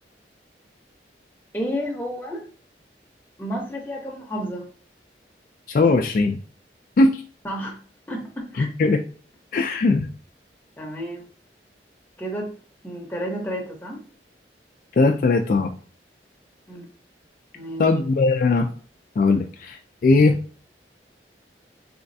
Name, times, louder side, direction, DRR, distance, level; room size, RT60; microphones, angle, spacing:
voice 1, 1.5-2.4 3.4-4.6 5.8-5.9 7.4-7.8 8.1-8.7 10.8-11.2 12.2-12.5 12.8-14.0 16.7-16.9 17.5-17.9, equal, 10° left, 0.8 m, -31 dB
voice 2, 5.7-6.4 7.0-7.2 8.5-9.0 9.5-10.1 15.0-15.7 17.8-18.7 19.2-20.4, left 3 dB, 50° left, 0.3 m, -19 dB
3.4 x 3.1 x 2.6 m
head